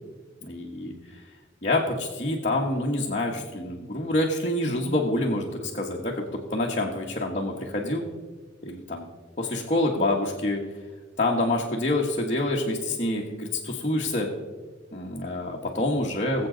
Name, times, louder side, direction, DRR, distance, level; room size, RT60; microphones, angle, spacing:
voice 1, 0.5-1.2 1.6-8.0 8.6-9.1 9.4-10.6 11.2-14.3 14.9-16.5, left 1 dB, 40° left, -2 dB, 1.3 m, -27 dB
21.0 x 7.7 x 3.9 m, 1.4 s
head